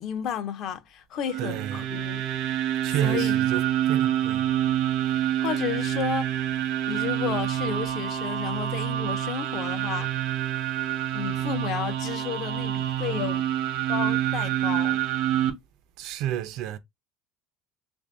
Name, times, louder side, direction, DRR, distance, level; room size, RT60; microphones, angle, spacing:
voice 1, 0.0-2.2 3.0-3.4 5.1-6.5 6.9-10.1 11.1-13.5 13.9-15.0, left 8 dB, 40° left, 0.5 m, -32 dB
sound 1, 1.2-15.5, right 12 dB, 70° right, 0.8 m, -27 dB
voice 2, 1.4-1.8 2.8-3.6 3.9-4.5 16.0-16.8, right 11 dB, 50° right, 0.4 m, -30 dB
3.3 x 2.6 x 3.3 m
cardioid pair, 175°, 0 cm